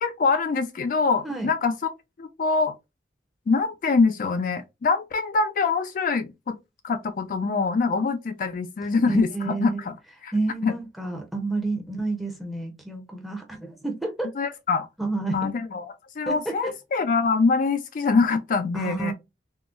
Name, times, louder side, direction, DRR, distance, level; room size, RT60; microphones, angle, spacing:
voice 1, 0.0-1.8 2.2-2.7 3.5-6.6 6.8-9.9 10.2-10.3 10.6-10.8 14.4-14.9 15.3-19.1, left 4 dB, 45° left, 0.3 m, -24 dB
voice 2, 8.8-9.8 10.3-14.3 15.0-15.5 16.3-16.7 18.7-19.1, right 3 dB, ahead, 0.6 m, -30 dB
3.7 x 2.0 x 2.3 m
head